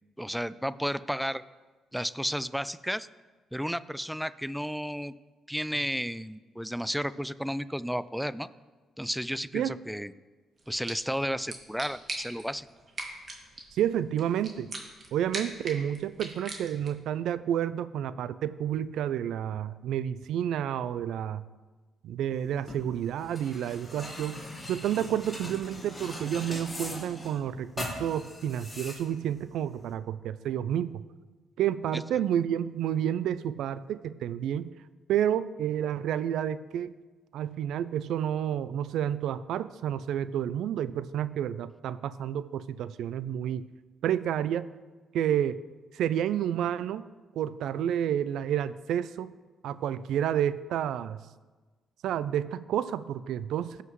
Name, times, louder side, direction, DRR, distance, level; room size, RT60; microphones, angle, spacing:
voice 1, 0.2-1.4 1.9-3.1 3.5-5.1 5.5-8.5 9.0-10.1 10.7-12.7, equal, ahead, 16 dB, 0.3 m, -32 dB
sound 1, 10.6-17.1, right 2 dB, 40° right, 1.7 m, -42 dB
voice 2, 13.7-14.7 15.1-21.4 22.0-31.0 31.6-34.7 35.1-36.9 37.3-43.7 44.0-44.7 45.1-45.6 45.9-47.1 47.4-49.3 49.6-51.2 52.0-53.8, right 10 dB, 80° right, 16 dB, 0.3 m, -30 dB
sound 2, 22.3-29.9, left 1 dB, 15° left, 2.3 m, -41 dB
16.5 x 5.7 x 3.1 m, 1.3 s
cardioid pair, 90°, 0 cm